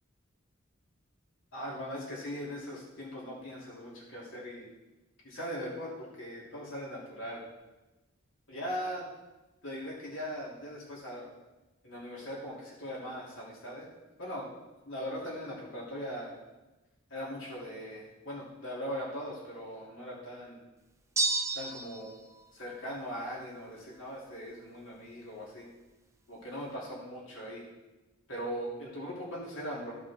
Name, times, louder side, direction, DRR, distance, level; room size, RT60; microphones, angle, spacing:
voice 1, 1.5-4.7 5.2-7.4 8.5-9.0 9.6-11.3 11.8-13.9 14.2-14.5 14.9-16.4 17.1-20.6 21.5-22.1 22.5-25.7 26.3-27.6 28.3-30.0, equal, 65° left, -6 dB, 3.2 m, -40 dB
sound 1, 21.2-22.1, right 3 dB, 15° right, 0.6 m, -30 dB
15.0 x 5.6 x 3.7 m, 1.1 s
head